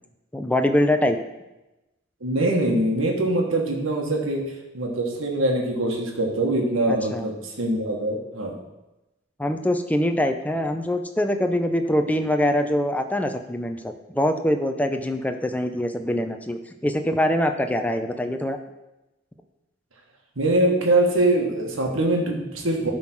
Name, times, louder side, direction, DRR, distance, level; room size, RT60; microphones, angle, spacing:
voice 1, 0.3-1.2 6.9-7.3 9.4-18.6, left 1 dB, 5° left, 6 dB, 0.6 m, -24 dB
voice 2, 2.2-4.4 4.7-8.6 20.4-22.9, right 1 dB, 80° right, 0 dB, 1.5 m, -23 dB
11.5 x 3.9 x 6.0 m, 0.98 s
head